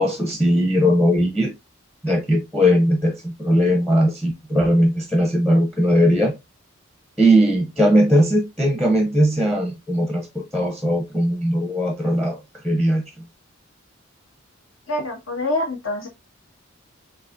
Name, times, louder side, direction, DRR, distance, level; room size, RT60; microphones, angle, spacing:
voice 1, 0.0-1.5 2.0-6.3 7.2-12.4 12.6-13.0, equal, ahead, 0.7 m, -19 dB
voice 2, 14.9-16.1, left 2 dB, 70° left, 1.6 m, -25 dB
6.8 x 2.4 x 2.5 m
head